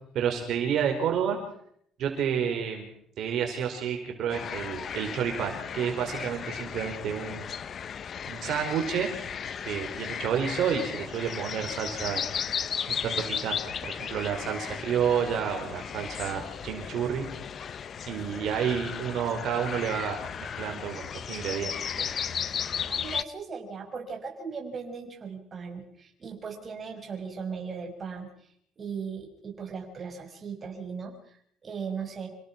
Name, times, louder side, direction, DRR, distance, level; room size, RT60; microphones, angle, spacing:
voice 1, 0.1-1.4 2.0-2.9 3.2-7.5 8.2-9.1 9.6-12.3 12.9-17.3 18.1-22.1, right 8 dB, 65° right, 4 dB, 5.0 m, -30 dB
sound 1, 4.3-23.2, left 7 dB, 50° left, 1.1 m, -35 dB
voice 2, 22.5-28.3 28.8-32.3, right 5 dB, 40° right, 3 dB, 6.4 m, -38 dB
29.0 x 17.5 x 6.1 m, 0.69 s
supercardioid pair, 90°, 0 cm